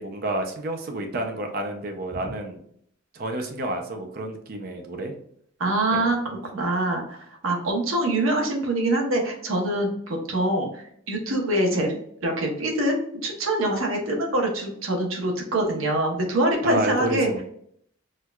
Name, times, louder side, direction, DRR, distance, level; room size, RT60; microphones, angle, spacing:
voice 1, 0.0-2.6 3.2-5.1 5.9-6.1 16.6-17.4, right 1 dB, 45° right, 4 dB, 0.4 m, -29 dB
voice 2, 5.6-12.0 12.2-13.0 13.2-17.4, right 1 dB, 90° right, 1 dB, 0.9 m, -24 dB
4.4 x 2.2 x 2.3 m, 0.67 s
head